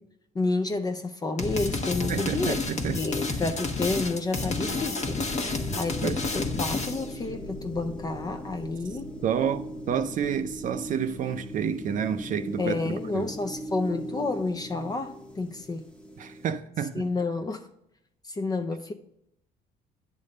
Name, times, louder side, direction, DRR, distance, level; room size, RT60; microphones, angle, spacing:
voice 1, 0.3-2.6 3.0-5.2 5.8-9.1 12.6-15.8 16.9-17.7 18.2-18.9, left 3 dB, 25° left, 0.5 m, -30 dB
sound 1, 1.4-7.1, left 3 dB, 40° left, 1.1 m, -30 dB
voice 2, 2.1-3.0 6.0-6.2 9.2-13.3 16.2-17.0, right 8 dB, 50° right, 0.5 m, -29 dB
sound 2, 4.5-16.5, equal, 5° left, 1.0 m, -40 dB
sound 3, 5.2-16.6, left 4 dB, 85° left, 1.2 m, -47 dB
9.6 x 3.6 x 6.5 m
cardioid pair, 110°, 17 cm